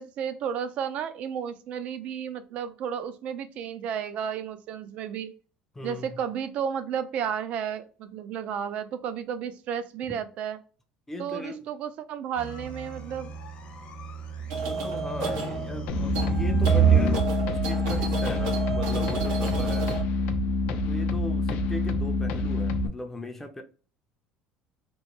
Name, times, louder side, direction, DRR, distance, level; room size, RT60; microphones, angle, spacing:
voice 1, 0.0-5.3 5.8-10.6 11.2-13.3, right 8 dB, 60° right, 0.4 m, -32 dB
voice 2, 5.7-6.2 11.1-11.7 14.6-20.0 20.8-23.6, left 1 dB, 15° left, 0.5 m, -38 dB
sound 1, 12.4-17.2, right 7 dB, 50° left, 0.8 m, -27 dB
sound 2, 14.5-20.0, right 4 dB, 85° right, 0.7 m, -33 dB
sound 3, 15.9-22.9, left 2 dB, 70° left, 0.4 m, -27 dB
2.9 x 2.1 x 3.1 m
cardioid pair, 115°, 3 cm